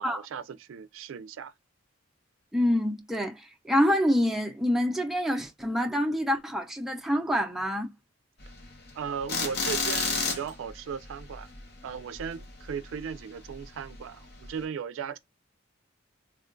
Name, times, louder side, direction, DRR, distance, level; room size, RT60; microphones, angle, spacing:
voice 1, 0.0-1.5 8.9-11.5 11.8-15.2, right 7 dB, 85° right, 0.3 m, -37 dB
voice 2, 2.5-7.9, equal, ahead, 0.3 m, -26 dB
sound 1, 8.4-13.1 13.5-13.6 14.0-14.1 14.5-14.6, left 4 dB, 55° left, 1.0 m, -31 dB
3.6 x 2.2 x 2.4 m
head